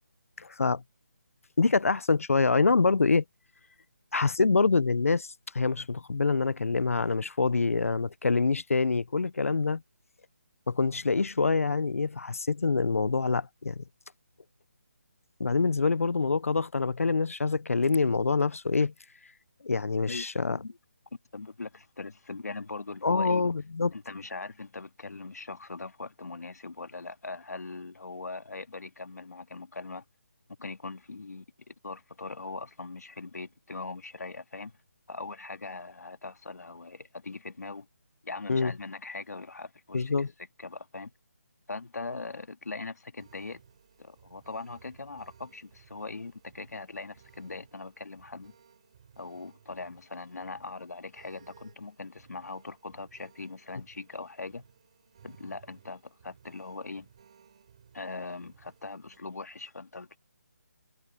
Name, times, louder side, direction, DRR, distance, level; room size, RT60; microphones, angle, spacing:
voice 1, 0.4-0.8 1.6-3.2 4.1-5.3 5.5-9.8 10.7-13.8 15.4-18.9 19.6-20.6 23.0-23.9 38.5-38.7 39.9-40.3, left 4 dB, 60° left, 0.7 m, -25 dB
voice 2, 20.1-20.8 21.3-23.4 23.9-30.0 30.6-34.7 35.1-37.9 38.2-40.1 40.6-41.1 41.7-43.6 44.0-48.5 49.2-54.6 55.2-57.1 57.9-60.2, left 3 dB, 90° left, 2.0 m, -41 dB
sound 1, 43.2-59.2, right 8 dB, 25° right, 6.5 m, -59 dB
hypercardioid pair, 180°, 8 cm